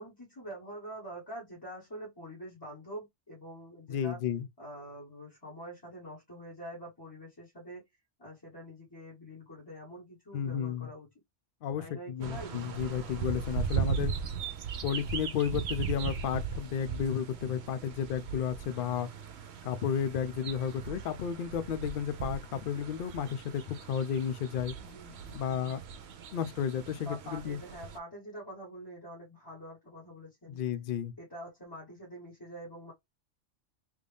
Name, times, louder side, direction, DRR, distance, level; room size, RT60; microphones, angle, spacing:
voice 1, 0.0-4.2 4.6-7.8 8.2-11.1 11.8-12.6 24.8-25.7 27.0-30.6 31.2-32.9, right 1 dB, 20° left, 1.4 m, -45 dB
voice 2, 3.9-4.5 10.3-10.9 11.6-14.1 14.8-19.1 19.6-24.8 25.3-25.8 26.3-27.6 30.5-31.1, left 8 dB, 60° left, 0.6 m, -32 dB
sound 1, 12.2-28.0, right 7 dB, 65° right, 0.9 m, -38 dB
3.4 x 2.6 x 3.4 m
omnidirectional pair, 1.3 m